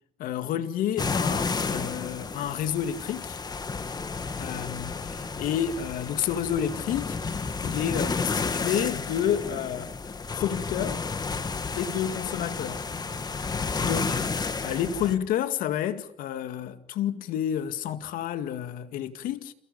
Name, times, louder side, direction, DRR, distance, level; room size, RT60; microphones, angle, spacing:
voice 1, 0.2-3.4 4.4-7.2 7.6-9.9 10.3-11.1 11.8-12.8 13.8-14.2 14.6-19.5, left 9 dB, 90° left, 2.2 m, -30 dB
sound 1, 1.0-15.2, left 4 dB, 30° left, 2.3 m, -31 dB
29.5 x 29.5 x 5.5 m
cardioid pair, 115°, 14 cm